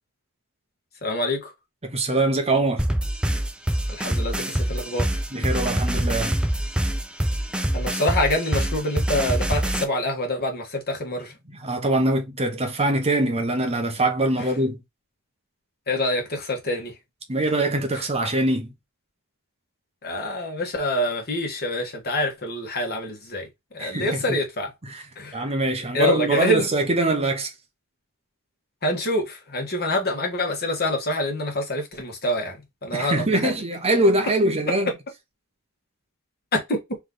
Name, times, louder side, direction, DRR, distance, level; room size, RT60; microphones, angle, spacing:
voice 1, 1.0-1.5 3.9-5.1 7.7-11.3 15.9-16.9 20.0-23.5 23.7-24.7 25.2-25.4 25.9-26.7 28.8-32.6 32.8-33.5 36.5-36.8, left 1 dB, 45° left, 1.5 m, -26 dB
voice 2, 1.8-2.9 5.3-6.4 11.5-14.8 17.3-18.7 23.8-24.4 24.8-25.0 25.3-27.5 32.9-34.9, right 2 dB, 30° right, 0.9 m, -23 dB
sound 1, 2.8-9.8, right 1 dB, 5° right, 0.4 m, -25 dB
3.5 x 3.3 x 3.8 m
head